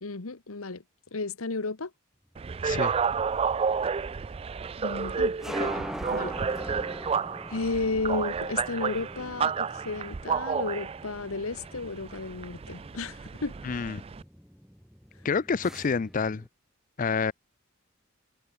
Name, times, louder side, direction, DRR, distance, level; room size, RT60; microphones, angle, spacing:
voice 1, 0.0-0.8 1.1-1.9 4.8-6.3 7.5-13.5, left 3 dB, 85° left, 1.3 m, -33 dB
sound 1, 2.4-14.2, right 6 dB, 30° right, 0.3 m, -31 dB
sound 2, 3.1-16.5, equal, ahead, 2.1 m, -43 dB
voice 2, 13.6-14.0 15.2-16.4 17.0-17.3, left 5 dB, 40° left, 0.4 m, -28 dB
head